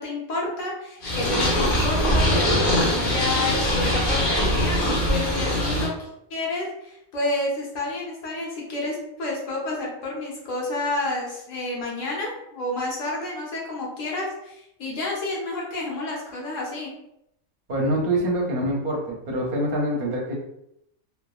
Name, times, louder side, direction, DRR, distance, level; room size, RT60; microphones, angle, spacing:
voice 1, 0.0-16.9, left 2 dB, 65° left, -3 dB, 1.1 m, -30 dB
Purr, 1.0-5.9, equal, 50° left, 0.7 m, -22 dB
voice 2, 17.7-20.4, right 1 dB, 50° right, -2 dB, 0.7 m, -25 dB
3.1 x 2.1 x 2.4 m, 0.78 s
omnidirectional pair, 1.5 m